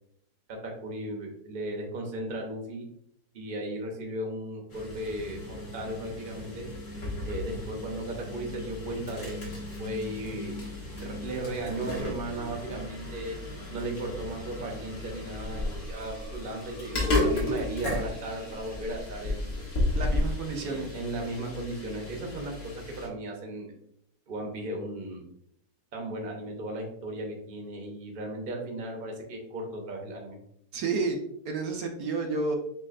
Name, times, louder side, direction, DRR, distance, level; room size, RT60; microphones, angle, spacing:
voice 1, 0.5-2.8 3.3-6.7 7.2-9.4 9.8-10.6 11.0-13.4 13.7-19.6 20.6-23.7 24.3-25.3 25.9-30.4, right 1 dB, 40° right, 1 dB, 0.9 m, -36 dB
sound 1, 4.7-23.1, left 1 dB, 50° left, 1.5 m, -34 dB
voice 2, 19.9-20.9 30.7-31.2 31.4-32.6, right 3 dB, 75° right, 2 dB, 1.3 m, -30 dB
7.4 x 2.5 x 2.5 m, 0.73 s
omnidirectional pair, 1.8 m